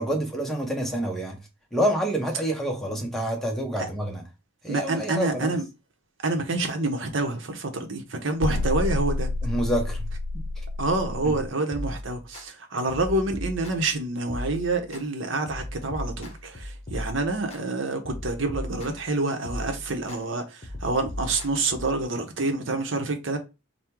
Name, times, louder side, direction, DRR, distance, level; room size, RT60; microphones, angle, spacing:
voice 1, 0.0-1.4 1.7-4.2 4.6-5.6 9.4-10.1 10.3-10.4 11.2-11.3, right 1 dB, ahead, 0.8 m, -27 dB
voice 2, 4.7-5.6 6.2-9.3 10.8-23.4, right 2 dB, 70° right, 0.9 m, -27 dB
sound 1, 8.4-11.5, left 2 dB, 65° left, 0.3 m, -29 dB
sound 2, 11.7-12.4 12.9-13.9 14.3-15.0 15.5-17.6 18.0-19.1 19.4-20.2 20.6-22.0, left 1 dB, 30° left, 0.9 m, -37 dB
3.6 x 2.2 x 4.4 m
head